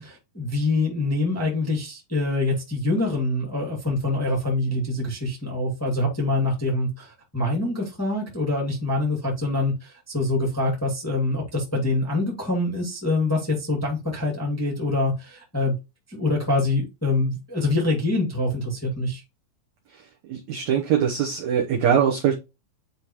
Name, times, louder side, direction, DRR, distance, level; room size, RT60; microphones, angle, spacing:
voice 1, 0.0-15.7 16.1-19.2, left 2 dB, 10° left, 0.9 m, -25 dB
voice 2, 20.3-22.3, right 8 dB, 65° right, 1.9 m, -22 dB
9.7 x 3.6 x 3.0 m
omnidirectional pair, 4.2 m